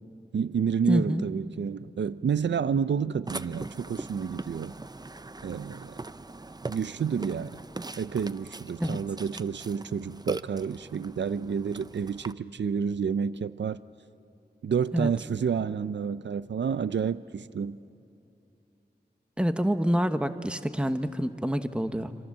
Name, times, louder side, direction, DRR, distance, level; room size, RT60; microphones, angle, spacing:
voice 1, 0.3-4.7 5.4-5.9 6.6-7.6 8.0-13.8 14.6-17.8, right 6 dB, 90° right, 0.5 m, -29 dB
voice 2, 0.9-1.3 8.8-9.0 14.9-15.1 19.4-22.2, equal, 5° right, 1.0 m, -27 dB
Burping eructation, 3.3-12.3, right 2 dB, 20° right, 0.5 m, -40 dB
27.0 x 26.5 x 7.4 m
wide cardioid pair, 65°, 18 cm